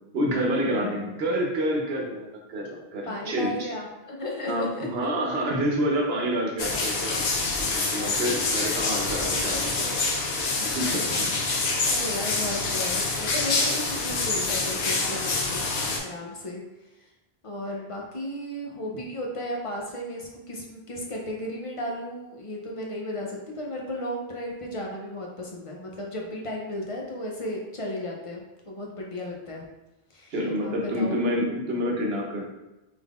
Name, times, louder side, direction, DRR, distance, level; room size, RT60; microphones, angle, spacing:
voice 1, 0.1-3.5 4.5-7.2 7.7-10.0 10.6-11.3 11.7-11.8 12.6-12.7 30.3-32.5, equal, 75° right, -1 dB, 1.0 m, -28 dB
voice 2, 3.1-4.9 7.9-8.4 9.5-10.3 11.1-11.6 11.8-15.7 16.0-16.6 17.0-17.1 17.4-29.6 30.1-30.3 30.6-31.2, left 1 dB, 40° left, -1 dB, 0.5 m, -35 dB
sound 1, 6.6-16.0, left 3 dB, 85° left, 0.9 m, -26 dB
3.6 x 3.4 x 2.3 m, 0.99 s
omnidirectional pair, 1.0 m